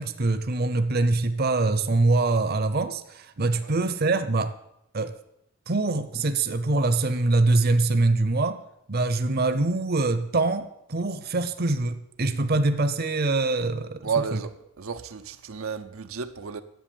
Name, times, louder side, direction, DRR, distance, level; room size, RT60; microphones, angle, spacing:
voice 1, 0.0-4.5 4.9-5.1 5.7-8.6 8.9-14.4, right 2 dB, 50° right, 0.7 m, -24 dB
voice 2, 3.4-3.7 14.0-14.5 14.8-16.6, right 6 dB, 90° right, 0.7 m, -32 dB
10.5 x 8.2 x 7.1 m
head